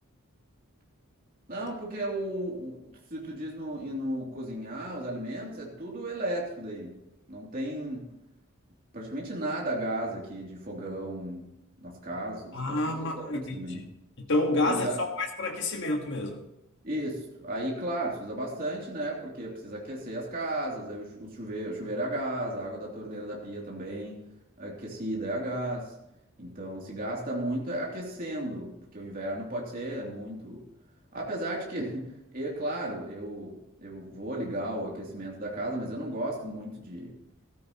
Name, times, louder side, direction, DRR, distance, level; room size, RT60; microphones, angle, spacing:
voice 1, 1.5-2.8 3.1-6.9 7.3-8.0 8.9-11.5 11.8-13.8 14.6-15.0 16.8-24.2 24.6-25.9 26.4-30.6 31.1-37.1, right 1 dB, 40° right, -3 dB, 2.9 m, -34 dB
voice 2, 12.5-13.9 14.2-14.9 15.2-16.4, left 2 dB, 55° left, 2 dB, 1.6 m, -29 dB
15.0 x 13.5 x 3.0 m, 0.87 s
head